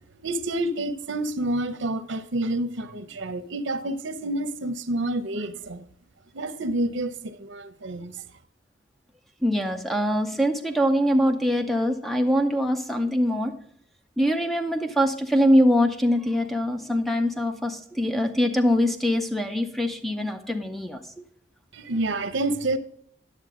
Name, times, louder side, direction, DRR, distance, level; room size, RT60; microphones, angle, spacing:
voice 1, 0.2-5.8 6.3-8.2 21.7-22.8, right 1 dB, 80° right, 0.7 m, -28 dB
voice 2, 9.4-13.5 14.2-21.2, equal, ahead, 0.6 m, -23 dB
11.0 x 6.7 x 3.7 m
head